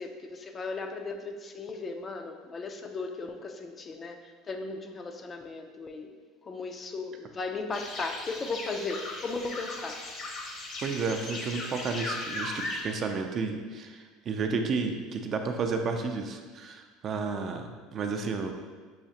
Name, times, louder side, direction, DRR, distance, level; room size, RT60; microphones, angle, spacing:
voice 1, 0.0-6.1 6.4-10.0, left 3 dB, 30° left, 5 dB, 0.4 m, -36 dB
sound 1, 7.7-12.8, left 2 dB, 45° left, 0.8 m, -37 dB
voice 2, 10.8-18.5, right 4 dB, 40° right, 5 dB, 0.4 m, -32 dB
5.7 x 2.4 x 2.7 m, 1.5 s
supercardioid pair, 110°, 0 cm